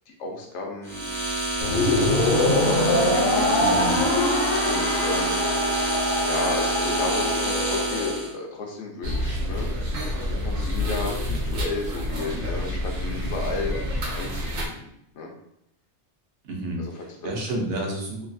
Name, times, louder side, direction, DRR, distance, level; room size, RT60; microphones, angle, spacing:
voice 1, 0.1-1.1 1.7-3.8 4.6-5.5 5.9-9.7 10.4-13.8 14.1-15.3 16.8-17.2, left 3 dB, 85° left, 1 dB, 1.0 m, -33 dB
sound 1, 0.8-8.3, right 2 dB, 5° left, 0.5 m, -27 dB
sound 2, 1.6-8.1, left 1 dB, 60° left, 0.7 m, -24 dB
voice 2, 3.6-4.1 16.4-16.8 17.2-18.3, right 1 dB, 65° right, 0 dB, 0.9 m, -29 dB
sound 3, 9.0-14.7, left 1 dB, 90° right, 1.0 m, -28 dB
3.0 x 2.4 x 2.5 m, 0.77 s
omnidirectional pair, 1.2 m